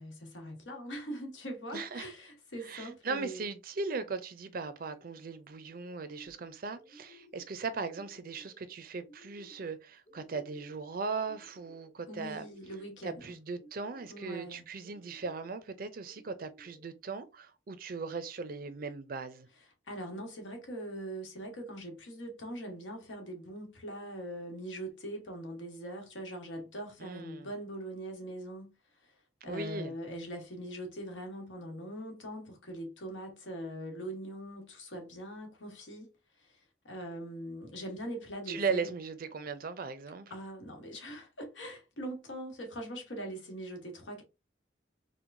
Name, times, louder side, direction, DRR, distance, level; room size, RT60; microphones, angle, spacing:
voice 1, 0.0-3.5 12.1-13.3 14.1-14.6 19.9-29.2 29.4-36.1 36.4-38.9 40.3-44.2, right 1 dB, 85° left, 1.3 m, -42 dB
voice 2, 1.7-2.1 2.7-12.5 13.0-19.5 27.0-27.5 29.5-29.9 38.5-40.3, right 4 dB, 50° right, 0.5 m, -38 dB
sound 1, 4.9-5.4 5.8-6.5 6.8-7.5 7.9-8.6 9.0-9.7 10.1-10.9 11.2-11.9 12.3-13.0 13.5-14.3 14.8-15.5 16.0-16.8, left 1 dB, 65° left, 1.8 m, -58 dB
4.5 x 2.2 x 2.5 m
head